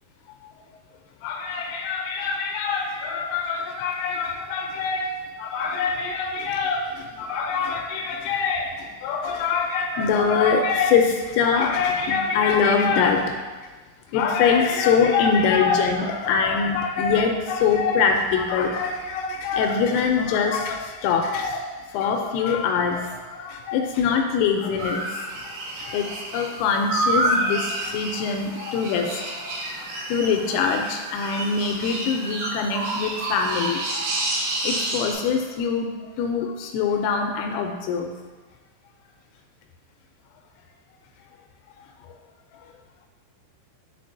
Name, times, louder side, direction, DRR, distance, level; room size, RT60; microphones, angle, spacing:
voice 1, 1.2-13.3 14.1-25.1 25.3-33.8 34.6-35.9 36.2-38.1 42.0-42.1, left 5 dB, 85° left, 3 dB, 3.0 m, -24 dB
sound 1, 24.8-35.1, right 1 dB, 80° right, 3.5 m, -29 dB
10.5 x 4.1 x 2.6 m, 1.3 s
omnidirectional pair, 5.9 m